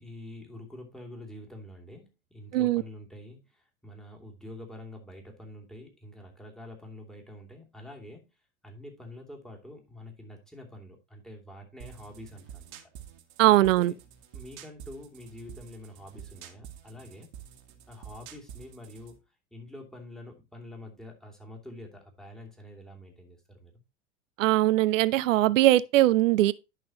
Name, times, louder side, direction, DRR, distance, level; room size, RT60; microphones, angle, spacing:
voice 1, 0.0-8.3 8.6-12.9 13.6-13.9 14.3-17.3 17.9-19.2 19.5-23.7, left 1 dB, ahead, 2.8 m, -46 dB
sound 1, 11.8-19.2, right 9 dB, 55° right, 1.6 m, -48 dB
voice 2, 13.4-13.9 24.4-26.5, right 15 dB, 75° right, 0.7 m, -21 dB
11.0 x 5.9 x 3.0 m
hypercardioid pair, 90°, 39 cm